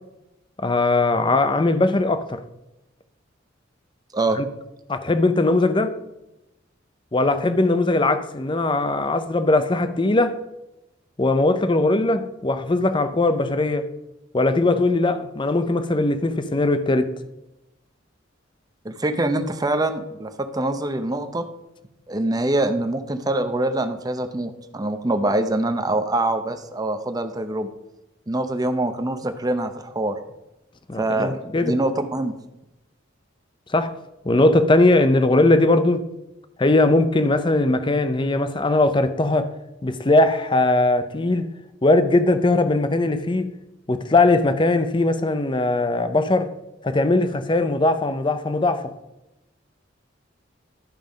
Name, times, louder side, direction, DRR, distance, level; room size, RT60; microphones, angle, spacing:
voice 1, 0.6-2.4 4.4-4.5 4.9-6.0 7.1-10.4 11.2-13.8 14.3-17.1 30.9-31.8 33.7-33.9 34.2-36.0 36.6-39.5 39.8-41.5 41.8-43.5 43.9-46.5 46.8-48.9, left 2 dB, 25° left, 0.6 m, -20 dB
voice 2, 18.8-21.4 22.1-27.7 28.3-30.2 30.9-32.3, right 2 dB, 20° right, 0.7 m, -24 dB
12.0 x 5.5 x 5.2 m
head